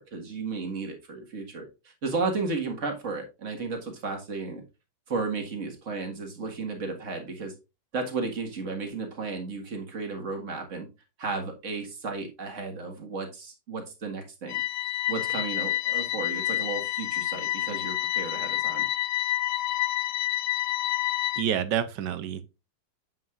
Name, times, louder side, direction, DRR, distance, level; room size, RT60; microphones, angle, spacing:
voice 1, 0.0-4.6 5.1-7.5 7.9-10.9 11.2-14.6 15.1-18.9, right 4 dB, 40° right, 1.9 m, -33 dB
sound 1, 14.5-21.4, left 15 dB, 70° left, 1.0 m, -28 dB
voice 2, 21.4-22.4, right 9 dB, 70° right, 1.2 m, -28 dB
7.8 x 7.7 x 2.4 m
omnidirectional pair, 2.1 m